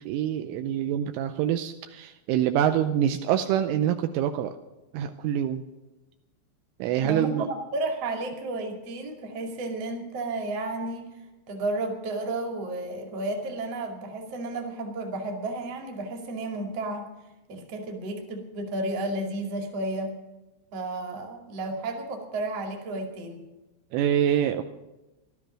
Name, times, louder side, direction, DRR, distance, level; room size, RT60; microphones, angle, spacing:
voice 1, 0.0-4.6 4.9-5.6 6.8-7.5 23.9-24.6, right 10 dB, 80° right, 7 dB, 3.0 m, -25 dB
voice 2, 7.0-11.1 11.5-17.1 17.5-20.1 20.7-23.5, right 2 dB, 45° right, 2 dB, 2.4 m, -32 dB
16.0 x 12.5 x 6.1 m, 1.0 s
omnidirectional pair, 5.9 m